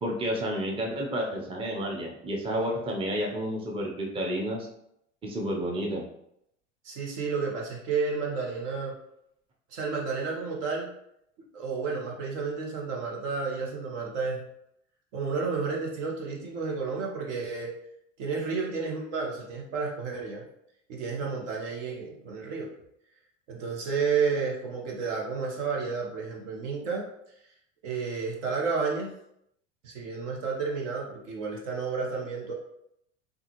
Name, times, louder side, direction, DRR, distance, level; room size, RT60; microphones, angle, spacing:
voice 1, 0.0-4.7 5.2-6.1, equal, 15° right, 0 dB, 0.6 m, -30 dB
voice 2, 6.8-8.9 9.7-10.9 11.5-14.5 15.1-17.7 18.2-20.4 20.9-22.7 23.5-27.0 27.8-29.1 29.8-32.5, right 5 dB, 70° right, -1 dB, 1.1 m, -31 dB
3.7 x 2.5 x 2.9 m, 0.76 s
hypercardioid pair, 90°, 38 cm